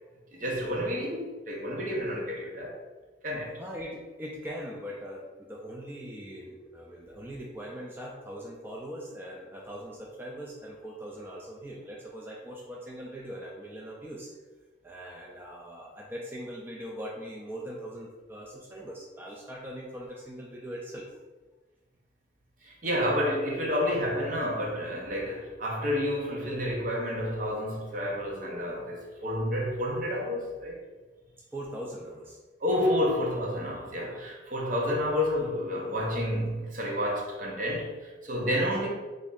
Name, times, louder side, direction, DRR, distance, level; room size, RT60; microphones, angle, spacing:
voice 1, 0.3-2.8 3.2-3.6 22.6-30.8 32.6-38.9, left 1 dB, 45° right, -2 dB, 0.8 m, -30 dB
voice 2, 3.6-14.3 14.8-21.1 31.5-32.4 38.4-38.9, equal, 10° right, -3 dB, 0.3 m, -41 dB
3.0 x 2.6 x 3.7 m, 1.2 s
head